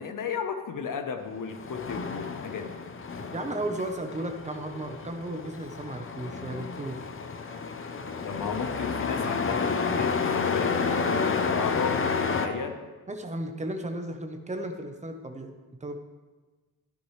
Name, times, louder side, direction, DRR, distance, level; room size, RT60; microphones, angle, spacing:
voice 1, 0.0-2.8 8.2-12.0 12.4-12.8, left 6 dB, 55° left, 7 dB, 1.0 m, -34 dB
Truck, 1.4-12.5, left 5 dB, 35° left, 0.7 m, -30 dB
voice 2, 3.3-7.0 13.1-15.5 15.8-16.0, right 1 dB, 20° right, 5 dB, 0.9 m, -34 dB
12.5 x 11.5 x 3.3 m, 1.3 s
wide cardioid pair, 160°, 39 cm